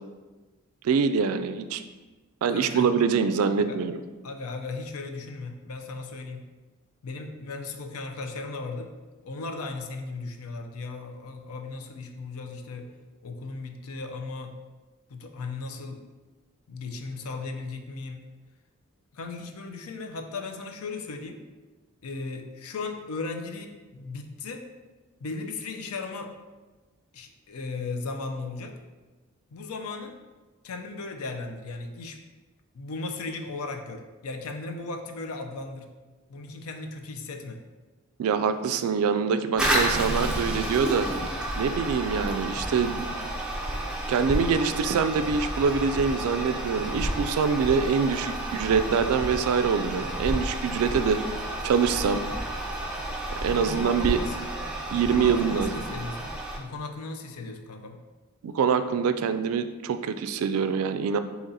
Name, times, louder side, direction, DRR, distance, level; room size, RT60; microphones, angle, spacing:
voice 1, 0.8-1.8 2.4-4.0 38.2-41.1 41.6-43.1 44.1-51.2 51.6-52.2 53.4-54.2 54.9-55.7 58.4-61.2, right 6 dB, 75° right, 11 dB, 0.3 m, -25 dB
voice 2, 2.5-3.0 3.6-3.8 4.2-6.4 7.0-8.9 9.2-12.9 13.2-14.5 15.1-16.0 16.7-18.2 19.1-21.4 22.0-24.6 25.2-26.3 27.1-28.7 29.5-30.1 30.6-32.2 32.7-35.9 36.3-37.6 53.4-54.4 54.9-58.0, left 3 dB, 80° left, 5 dB, 0.5 m, -36 dB
Toilet flush, 39.6-56.6, right 1 dB, 5° right, 0.4 m, -31 dB
4.1 x 2.9 x 3.8 m, 1.3 s
head